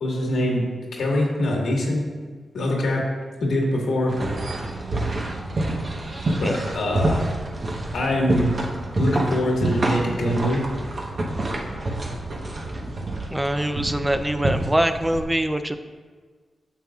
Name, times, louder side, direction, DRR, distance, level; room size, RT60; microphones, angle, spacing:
voice 1, 0.0-0.6 0.9-2.1 2.5-3.0 3.4-4.1 6.4-7.2 7.9-8.5 9.0-10.7, left 1 dB, 85° left, -1 dB, 1.6 m, -23 dB
sound 1, 4.1-15.2, right 2 dB, 50° right, 1.0 m, -27 dB
voice 2, 13.3-15.8, right 1 dB, 10° right, 9 dB, 0.4 m, -23 dB
9.0 x 7.0 x 2.4 m, 1.5 s
cardioid pair, 65°, 0 cm